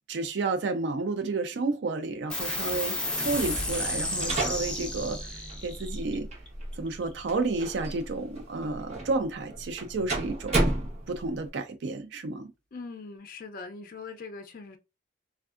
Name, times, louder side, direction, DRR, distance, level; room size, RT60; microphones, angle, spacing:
voice 1, 0.1-6.3 6.8-10.7 11.1-12.5, right 3 dB, 85° right, 0.4 m, -31 dB
sound 1, 2.3-9.2, left 1 dB, 5° left, 0.6 m, -35 dB
sound 2, 3.7-11.5, right 2 dB, 40° right, 1.0 m, -33 dB
voice 2, 12.7-14.8, left 4 dB, 55° left, 0.4 m, -41 dB
3.4 x 2.3 x 2.3 m
head